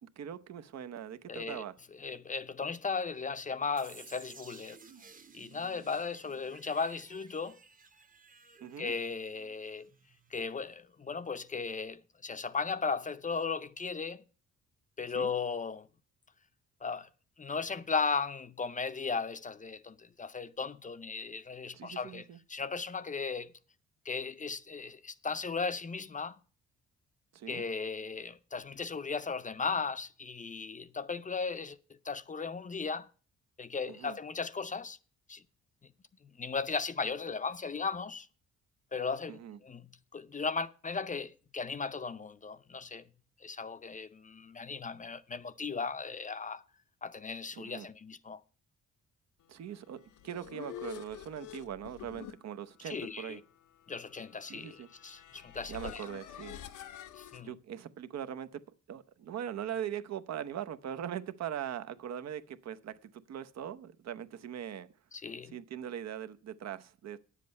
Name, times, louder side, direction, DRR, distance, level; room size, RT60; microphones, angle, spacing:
voice 1, 0.0-1.8 8.6-8.9 15.1-15.3 21.7-22.4 27.3-27.6 33.9-34.2 39.3-39.6 47.6-47.9 49.5-53.4 54.5-54.9 55.7-56.6 57.4-58.6 58.9-64.9 65.5-67.2, right 9 dB, 60° right, 0.8 m, -41 dB
voice 2, 1.3-1.6 1.9-4.8 5.3-7.6 8.8-9.9 10.3-14.2 15.0-15.9 16.8-17.1 17.4-23.5 24.1-26.4 27.5-31.8 32.0-33.1 33.6-35.0 35.3-35.4 36.4-38.3 38.9-43.1 43.4-46.6 47.0-48.4 52.9-53.4 53.9-56.0 57.2-57.5 65.1-65.6, left 5 dB, 25° left, 0.6 m, -36 dB
sound 1, 3.8-10.6, right 5 dB, 25° right, 1.0 m, -56 dB
sound 2, 49.9-57.4, left 11 dB, 80° left, 0.9 m, -48 dB
9.6 x 7.5 x 5.3 m
cardioid pair, 90°, 30 cm